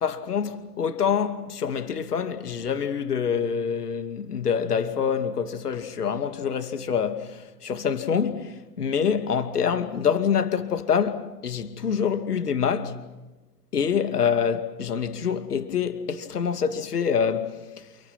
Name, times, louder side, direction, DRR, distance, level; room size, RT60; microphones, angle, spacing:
voice 1, 0.0-13.0 13.7-17.8, left 7 dB, 70° left, 2.6 m, -26 dB
29.5 x 28.5 x 6.2 m
figure-of-eight pair, 105°, 48 cm